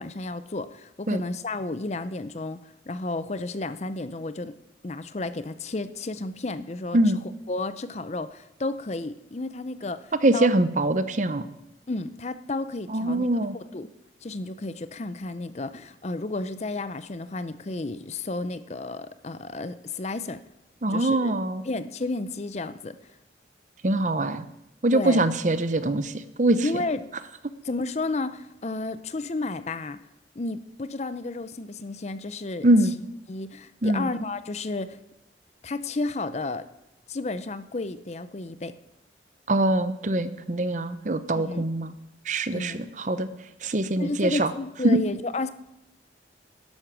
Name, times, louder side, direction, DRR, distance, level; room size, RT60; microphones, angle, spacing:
voice 1, 0.0-4.6 4.8-7.0 7.5-10.5 11.9-13.3 13.5-13.9 14.2-20.4 20.9-21.3 21.6-23.0 24.9-25.2 26.6-27.2 27.6-30.0 30.4-32.7 33.3-35.0 35.6-36.7 37.1-38.7 41.4-41.7 42.5-42.8 44.0-45.5, left 2 dB, 35° left, 13 dB, 0.5 m, -32 dB
voice 2, 10.2-11.4 12.9-13.5 20.8-21.6 23.8-24.4 24.8-26.6 32.6-32.9 33.8-34.1 39.5-41.9 42.3-43.3 43.6-44.5 44.8-45.0, right 1 dB, 40° right, 12 dB, 0.7 m, -23 dB
11.5 x 11.0 x 6.1 m, 0.88 s
head